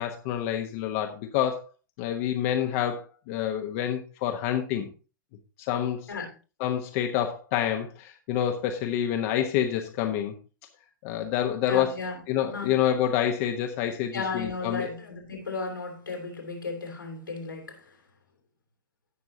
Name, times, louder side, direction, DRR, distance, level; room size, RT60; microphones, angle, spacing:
voice 1, 0.0-1.7 2.0-4.9 5.6-6.1 6.6-10.3 11.0-11.9 12.3-14.9, left 10 dB, 45° left, 1.2 m, -27 dB
voice 2, 11.7-12.8 14.1-18.0, left 4 dB, 85° left, 3.3 m, -35 dB
16.5 x 6.0 x 2.8 m
figure-of-eight pair, 105°, 11 cm